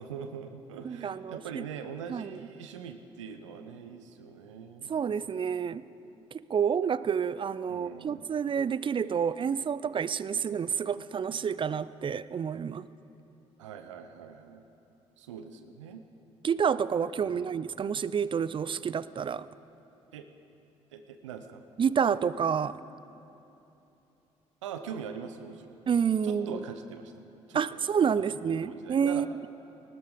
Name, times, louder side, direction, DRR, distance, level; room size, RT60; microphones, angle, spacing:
voice 1, 0.0-5.0 7.7-8.3 13.6-14.6 15.2-16.0 17.2-17.5 20.1-20.3 20.9-21.6 24.6-25.8 26.2-27.1 27.5-27.8 28.2-29.3, right 7 dB, 85° right, 8 dB, 0.6 m, -42 dB
voice 2, 0.8-1.6 2.1-2.3 4.9-5.9 6.3-12.9 16.4-19.5 21.8-22.8 25.9-26.6 27.5-29.5, right 7 dB, 35° right, 17 dB, 0.4 m, -29 dB
19.0 x 12.5 x 5.1 m, 2.9 s
hypercardioid pair, 50°, 15 cm